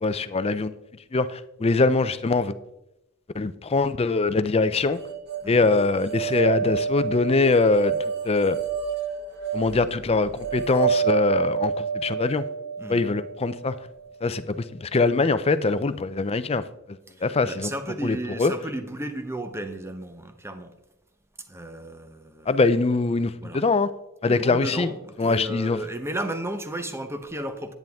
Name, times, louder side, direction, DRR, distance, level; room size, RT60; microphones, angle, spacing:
voice 1, 0.0-0.7 1.1-2.5 3.3-5.0 5.5-8.0 8.2-8.6 9.5-12.5 12.9-13.8 14.2-16.6 17.2-17.7 18.0-18.5 22.5-23.9 24.2-24.9 25.2-25.8, left 3 dB, 30° left, 13 dB, 0.5 m, -23 dB
sound 1, 4.9-14.1, right 6 dB, 50° right, 1.4 m, -29 dB
voice 2, 17.1-20.7 21.5-22.6 23.3-23.7 24.2-27.8, right 1 dB, 10° right, 8 dB, 0.8 m, -34 dB
10.0 x 9.1 x 3.5 m, 0.88 s
head